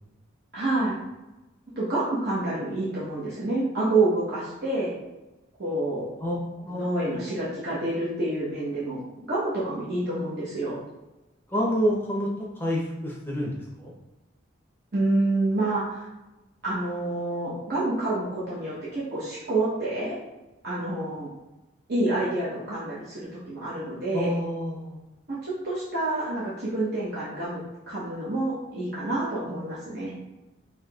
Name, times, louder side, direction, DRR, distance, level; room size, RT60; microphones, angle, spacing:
voice 1, 0.5-1.0 1.8-4.9 5.6-6.1 6.6-9.0 9.3-10.8 14.9-16.1 16.6-20.2 20.6-21.3 21.9-24.3 25.3-27.6 27.9-30.2, right 2 dB, 50° right, -9 dB, 1.0 m, -28 dB
voice 2, 6.7-7.2 11.5-13.9 24.1-25.0, equal, 10° left, -3 dB, 0.7 m, -28 dB
5.7 x 2.8 x 2.4 m, 1.0 s
head